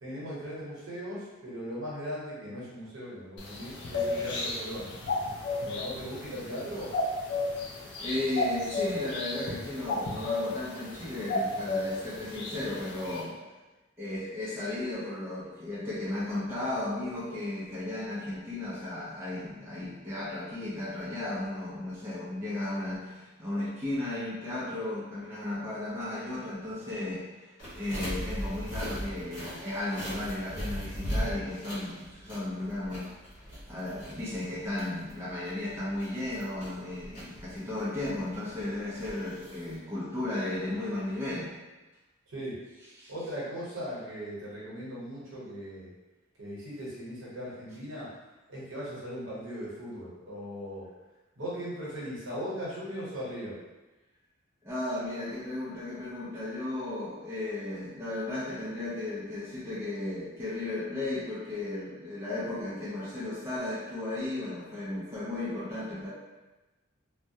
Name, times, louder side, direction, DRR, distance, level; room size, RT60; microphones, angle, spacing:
voice 1, 0.0-4.9 5.6-6.9 42.3-42.6 43.1-45.9 46.4-48.1 48.5-50.9 51.4-53.6, equal, 70° right, -8 dB, 1.0 m, -38 dB
sound 1, 3.4-13.2, left 2 dB, 60° left, 0.5 m, -33 dB
voice 2, 8.0-13.4 14.0-41.6 43.0-43.1 54.6-66.1, left 2 dB, 10° right, -10 dB, 0.5 m, -35 dB
sound 2, 27.6-39.8, equal, 40° left, 1.0 m, -39 dB
2.2 x 2.1 x 2.7 m, 1.1 s
head